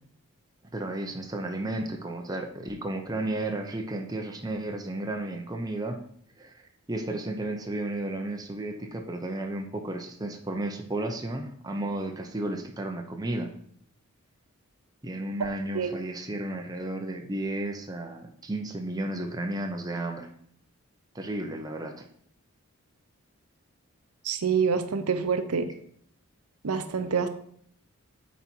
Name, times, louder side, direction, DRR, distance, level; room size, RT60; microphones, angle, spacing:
voice 1, 0.7-6.0 6.4-6.5 6.9-13.5 15.0-20.3 21.1-22.1, right 1 dB, 15° right, 3 dB, 0.6 m, -33 dB
voice 2, 24.2-25.7 26.6-27.3, right 6 dB, 90° right, 9 dB, 0.6 m, -26 dB
8.4 x 4.1 x 4.4 m, 0.63 s
head